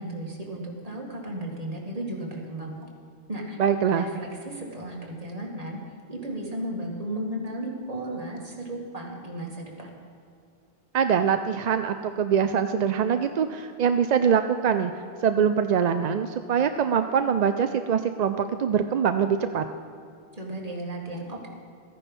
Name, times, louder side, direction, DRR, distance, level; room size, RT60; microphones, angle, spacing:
voice 1, 0.0-2.9 3.3-3.6 4.0-5.8 6.1-9.9 20.3-21.5, right 1 dB, 35° right, -1 dB, 2.0 m, -34 dB
voice 2, 3.6-4.1 10.9-14.9 15.2-19.6, right 7 dB, 55° right, 8 dB, 0.5 m, -23 dB
14.0 x 9.9 x 5.4 m, 2.5 s
omnidirectional pair, 1.1 m